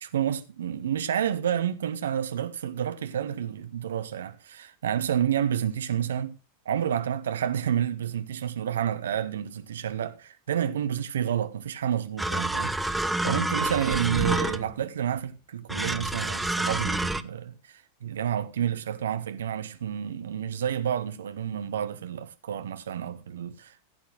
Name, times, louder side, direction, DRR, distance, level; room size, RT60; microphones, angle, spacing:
voice 1, 0.0-6.4 6.6-23.8, right 9 dB, 65° right, 1.0 m, -30 dB
sound 1, 12.2-14.8 15.7-17.2, right 1 dB, 5° right, 0.7 m, -28 dB
16.0 x 8.5 x 3.3 m
figure-of-eight pair, 90°, 0 cm